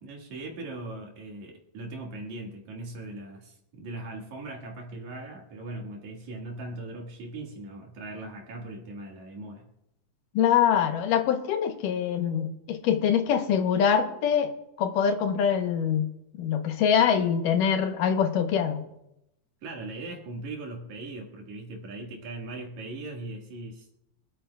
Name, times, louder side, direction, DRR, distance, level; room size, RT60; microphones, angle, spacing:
voice 1, 0.0-9.7 19.6-23.9, right 2 dB, 65° right, 1 dB, 3.0 m, -39 dB
voice 2, 10.3-14.5 14.8-16.1 16.4-18.8, left 8 dB, 85° left, 7 dB, 2.5 m, -24 dB
25.5 x 8.8 x 2.3 m, 0.85 s
omnidirectional pair, 3.8 m